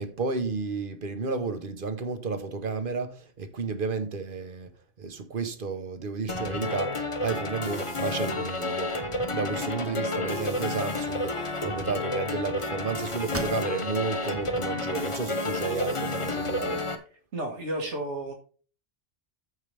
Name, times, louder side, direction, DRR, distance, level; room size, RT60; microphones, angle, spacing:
voice 1, 0.0-4.7 5.0-8.9 9.3-16.8, right 4 dB, 50° right, 1.2 m, -32 dB
sound 1, 6.3-17.0, left 2 dB, 30° left, 0.9 m, -31 dB
sound 2, 13.3-14.1 14.6-14.7 15.2-16.1, right 3 dB, 20° right, 0.4 m, -39 dB
voice 2, 17.3-18.3, right 1 dB, 85° right, 2.0 m, -32 dB
14.0 x 4.7 x 3.4 m
omnidirectional pair, 1.2 m